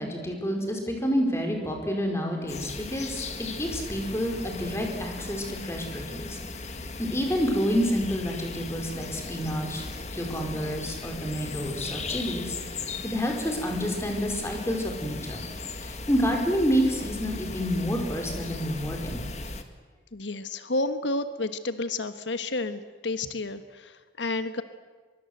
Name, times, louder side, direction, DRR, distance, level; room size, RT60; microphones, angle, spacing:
voice 1, 0.0-6.4 7.0-12.6 13.0-19.2, equal, 15° left, 2 dB, 4.8 m, -29 dB
sound 1, 2.5-19.6, left 3 dB, 40° left, 1.9 m, -37 dB
voice 2, 20.1-24.6, left 2 dB, 90° left, 11 dB, 1.3 m, -31 dB
24.0 x 23.5 x 8.0 m, 1.4 s
head